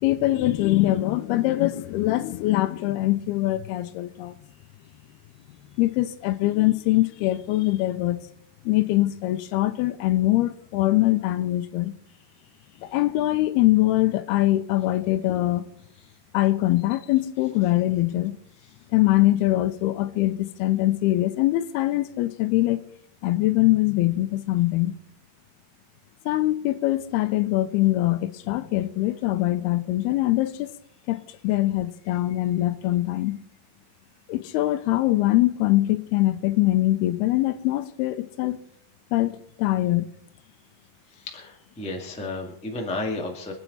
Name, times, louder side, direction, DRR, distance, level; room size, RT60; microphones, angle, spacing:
voice 1, 0.0-4.3 5.8-8.2 8.7-11.9 12.8-15.6 16.3-18.4 18.9-22.8 23.2-25.0 26.3-30.7 31.1-33.4 34.3-38.6 39.1-40.1, left 16 dB, 85° left, 2.6 m, -23 dB
voice 2, 41.1-43.5, left 2 dB, 5° left, 0.6 m, -32 dB
25.0 x 9.1 x 4.2 m
omnidirectional pair, 4.5 m